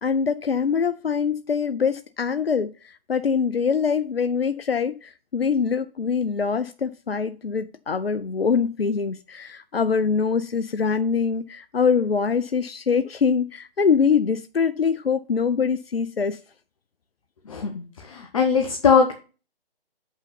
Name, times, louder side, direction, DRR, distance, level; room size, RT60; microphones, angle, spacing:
voice 1, 0.0-16.4, left 6 dB, 80° left, 0.6 m, -24 dB
voice 2, 17.5-19.1, left 5 dB, 35° left, 1.0 m, -21 dB
6.8 x 5.5 x 5.7 m
figure-of-eight pair, 140°, 29 cm